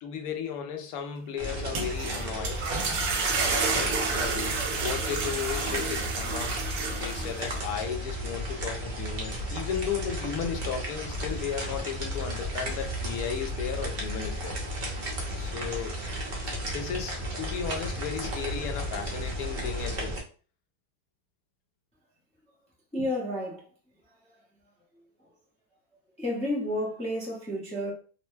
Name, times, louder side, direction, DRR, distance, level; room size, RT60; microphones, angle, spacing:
voice 1, 0.0-2.7 3.6-4.5 4.8-6.6 7.0-14.6 15.3-16.0 16.7-20.1, left 7 dB, 70° left, 1.0 m, -35 dB
sound 1, 1.4-20.2, equal, 50° right, 0.5 m, -34 dB
sound 2, 1.5-7.6, right 4 dB, 70° right, 1.1 m, -30 dB
voice 2, 22.9-23.7 24.0-24.4 24.9-25.3 26.2-27.9, left 1 dB, 5° left, 0.5 m, -32 dB
2.9 x 2.1 x 3.1 m
omnidirectional pair, 1.8 m